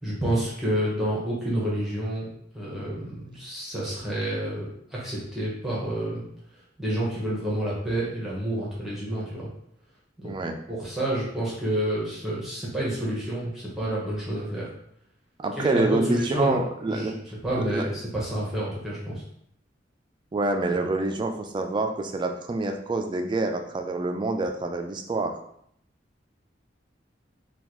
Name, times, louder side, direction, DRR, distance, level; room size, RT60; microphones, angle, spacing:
voice 1, 0.0-2.3 2.5-6.2 6.8-9.5 10.2-10.3 10.7-14.7 15.6-16.6 16.9-19.2, right 1 dB, ahead, -7 dB, 0.9 m, -29 dB
voice 2, 10.2-10.6 15.4-17.2 17.7-17.8 20.3-25.4, right 2 dB, 25° right, 5 dB, 0.3 m, -27 dB
3.7 x 2.3 x 3.0 m, 0.70 s
head